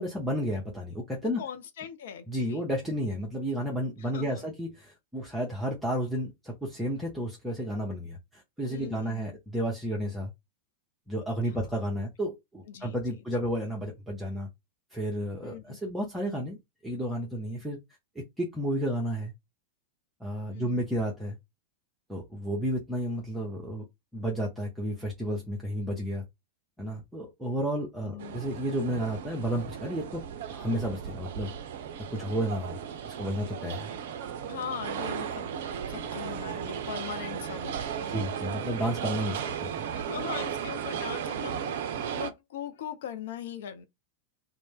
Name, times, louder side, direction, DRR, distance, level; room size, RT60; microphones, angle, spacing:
voice 1, 0.0-1.4 2.3-10.3 11.1-14.5 14.9-17.8 18.2-19.3 20.2-21.4 22.1-23.9 24.1-26.3 26.8-30.2 30.5-31.5 32.1-32.8 33.0-33.9 38.1-39.8, equal, 5° right, 0.7 m, -32 dB
voice 2, 1.2-2.7 4.0-4.5 8.7-9.4 11.4-12.1 12.7-13.0 15.4-15.8 20.5-20.8 28.0-28.4 34.4-35.5 35.8-38.3 39.3-39.5 39.9-43.9, left 8 dB, 55° left, 0.4 m, -41 dB
sound 1, 28.2-42.3, right 8 dB, 55° right, 0.4 m, -35 dB
2.5 x 2.1 x 3.6 m
figure-of-eight pair, 90°, 0 cm